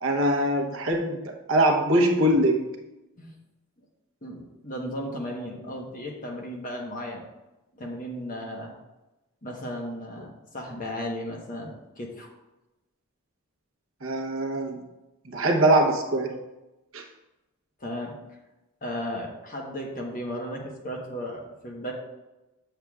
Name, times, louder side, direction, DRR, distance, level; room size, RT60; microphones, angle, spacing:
voice 1, 0.0-1.2 1.5-2.7 14.0-14.8 15.2-16.4 16.9-17.0, right 1 dB, 65° right, 1 dB, 1.0 m, -22 dB
voice 2, 4.2-7.2 7.7-8.7 9.4-12.3 17.8-18.1 18.8-21.9, equal, 35° left, 0 dB, 1.1 m, -35 dB
7.6 x 6.8 x 2.4 m, 1.0 s
head